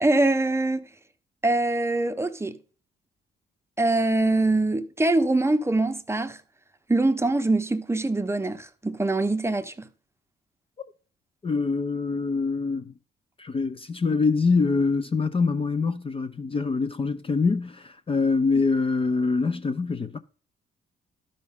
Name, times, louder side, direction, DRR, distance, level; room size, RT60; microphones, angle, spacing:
voice 1, 0.0-0.8 1.4-2.6 3.8-6.4 6.9-9.9, right 2 dB, 15° right, 0.8 m, -23 dB
voice 2, 11.4-12.9 13.4-20.2, left 4 dB, 30° left, 0.5 m, -24 dB
12.5 x 5.3 x 3.6 m
cardioid pair, 90°, 20 cm